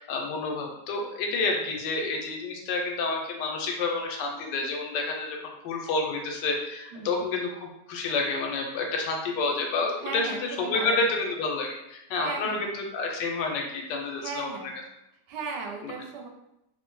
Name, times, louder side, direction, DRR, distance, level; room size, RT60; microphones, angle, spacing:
voice 1, 0.0-5.4 5.6-10.3 10.6-14.5, left 3 dB, 85° left, 1 dB, 1.2 m, -29 dB
voice 2, 6.9-7.3 10.0-11.1 12.2-12.7 14.2-14.8 15.3-16.3, right 4 dB, 80° right, 2 dB, 1.1 m, -37 dB
2.9 x 2.1 x 2.9 m, 0.86 s
omnidirectional pair, 1.8 m